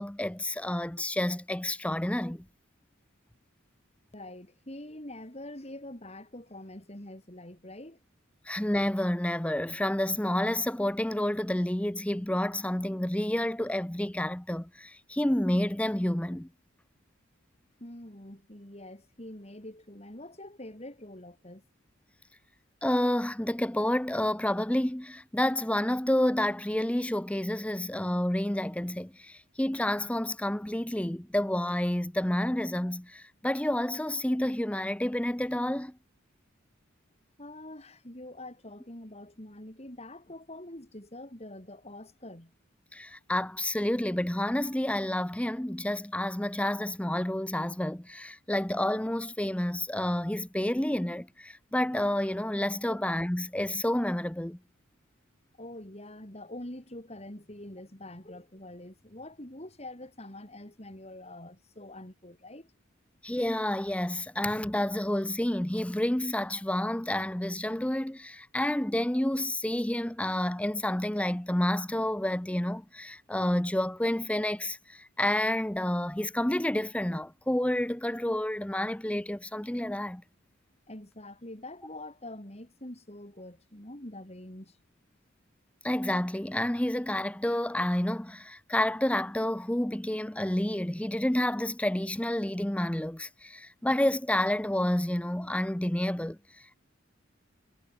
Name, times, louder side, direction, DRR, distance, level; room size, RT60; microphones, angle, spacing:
voice 1, 0.0-2.5 8.5-16.5 22.8-35.9 42.9-54.6 63.2-80.2 85.8-96.4, left 1 dB, 5° left, 0.6 m, -29 dB
voice 2, 4.1-8.0 17.8-21.6 37.4-42.5 52.9-53.0 55.6-62.7 80.9-84.8, left 1 dB, 30° left, 3.7 m, -45 dB
head